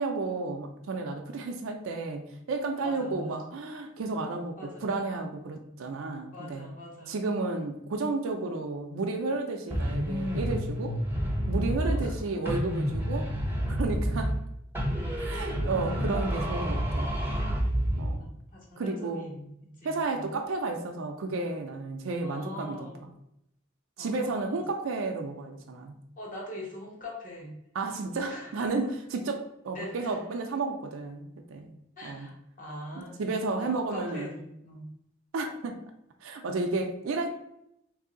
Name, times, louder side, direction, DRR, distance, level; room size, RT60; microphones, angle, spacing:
voice 1, 0.0-6.7 7.1-11.0 11.5-13.3 13.7-14.4 15.2-17.1 18.0-18.2 18.8-19.3 19.8-22.9 24.0-25.9 27.7-31.7 32.0-32.3 32.9-34.3 35.3-35.8 36.2-37.3, right 3 dB, 85° right, 3 dB, 0.4 m, -32 dB
voice 2, 2.8-3.3 4.6-5.0 6.3-7.1 11.8-12.1 18.2-19.5 19.8-20.3 22.2-23.0 24.0-24.6 26.2-27.5 28.3-28.7 29.7-30.1 32.0-34.9, left 1 dB, 40° left, -3 dB, 1.0 m, -43 dB
sound 1, 9.7-12.2 12.4-14.5 14.7-18.2, equal, 10° right, 0.6 m, -29 dB
3.1 x 2.7 x 3.7 m, 0.79 s
head